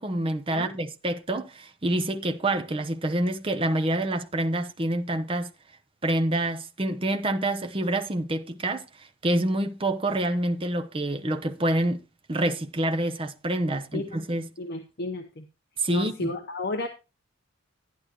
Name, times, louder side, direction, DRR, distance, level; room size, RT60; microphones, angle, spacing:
voice 1, 0.0-5.5 6.0-12.0 12.3-14.5 15.8-16.3, right 1 dB, 25° right, 0.7 m, -27 dB
voice 2, 14.6-15.5 15.9-16.9, left 2 dB, 50° left, 0.9 m, -33 dB
11.0 x 10.5 x 3.0 m
head